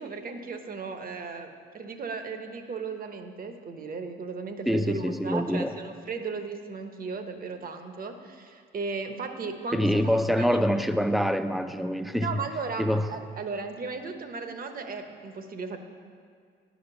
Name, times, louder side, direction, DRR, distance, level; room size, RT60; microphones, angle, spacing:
voice 1, 0.0-10.6 12.2-15.8, right 4 dB, 45° right, 7 dB, 1.0 m, -36 dB
voice 2, 4.7-5.7 9.7-12.4 12.8-13.1, equal, ahead, 9 dB, 0.5 m, -25 dB
10.5 x 5.1 x 7.1 m, 2.1 s
cardioid pair, 90°, 20 cm